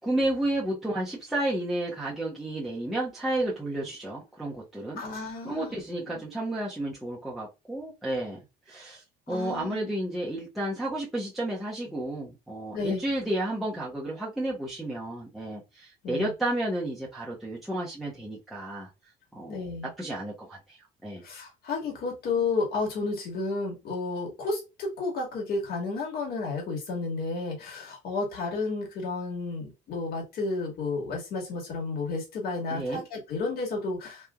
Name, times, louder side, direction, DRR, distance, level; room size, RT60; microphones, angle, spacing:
voice 1, 0.0-5.0 5.4-8.4 8.7-18.9 19.3-19.6 20.0-21.2 32.7-33.0, right 1 dB, ahead, 0.9 m, -32 dB
voice 2, 5.0-5.8 6.1-6.2 9.3-9.9 12.7-13.0 16.0-16.3 19.5-19.9 21.2-34.3, left 3 dB, 65° left, 1.6 m, -32 dB
3.2 x 2.6 x 2.3 m
cardioid pair, 110°, 17 cm